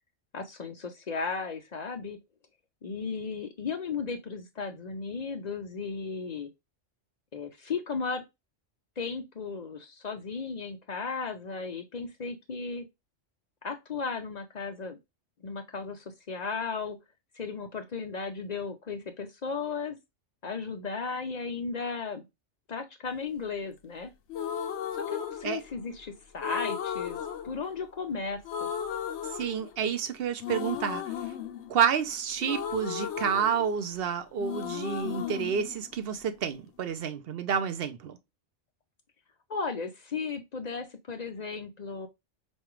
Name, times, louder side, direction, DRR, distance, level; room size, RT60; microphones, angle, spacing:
voice 1, 0.3-2.2 2.8-6.5 7.3-8.2 9.0-12.9 13.6-15.0 15.4-17.0 17.4-20.0 20.4-22.2 22.7-24.1 24.9-28.7 39.5-42.1, left 5 dB, 50° left, 0.5 m, -35 dB
sound 1, 24.3-26.0 26.4-28.2 28.4-30.0 30.4-34.1 34.4-36.4, left 8 dB, 70° left, 0.9 m, -36 dB
voice 2, 29.3-31.0 31.7-38.2, right 7 dB, 60° right, 0.8 m, -29 dB
5.3 x 2.3 x 3.0 m
omnidirectional pair, 1.3 m